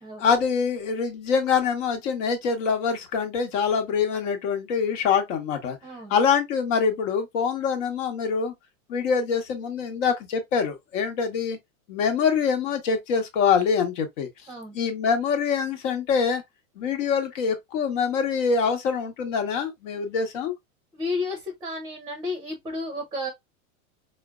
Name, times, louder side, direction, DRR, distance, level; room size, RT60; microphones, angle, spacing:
voice 1, 0.2-5.8 6.1-8.5 8.9-11.6 11.9-14.3 14.7-16.4 16.8-20.5, left 6 dB, 60° left, 1.1 m, -24 dB
voice 2, 5.8-6.1 14.5-14.8 20.9-23.3, left 2 dB, 10° right, 0.6 m, -32 dB
4.2 x 2.1 x 2.3 m
hypercardioid pair, 125°, 42 cm